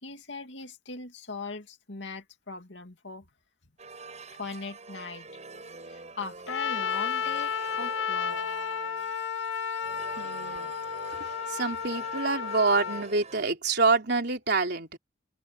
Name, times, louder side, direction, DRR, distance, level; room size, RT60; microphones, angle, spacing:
voice 1, 0.0-3.3 4.3-5.4 5.9-8.4, left 3 dB, 65° left, 2.7 m, -40 dB
sound 1, 3.8-13.4, right 3 dB, 35° right, 6.9 m, -46 dB
Trumpet, 6.5-13.1, left 7 dB, 90° left, 1.9 m, -32 dB
voice 2, 10.2-10.7 11.1-15.0, right 3 dB, 60° right, 3.7 m, -27 dB
open air
head